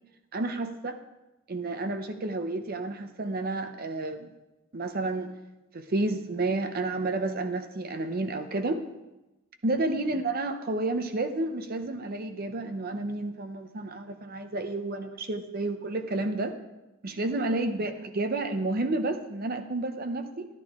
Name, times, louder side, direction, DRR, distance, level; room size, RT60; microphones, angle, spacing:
voice 1, 0.3-1.0 1.5-4.3 4.7-5.3 5.7-8.8 9.6-16.6 17.0-20.5, right 2 dB, 50° right, 8 dB, 0.6 m, -30 dB
11.5 x 10.5 x 3.6 m, 1.0 s
head